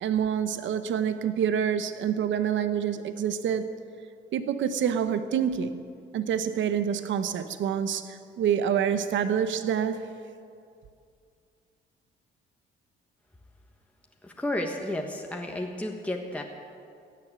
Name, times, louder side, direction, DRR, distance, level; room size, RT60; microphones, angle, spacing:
voice 1, 0.0-3.7 4.3-5.8 6.1-10.1, right 8 dB, 70° right, 11 dB, 0.9 m, -27 dB
voice 2, 14.2-16.4, left 1 dB, 5° left, 1 dB, 1.3 m, -32 dB
15.5 x 7.7 x 10.0 m, 2.3 s
cardioid pair, 90°, 20 cm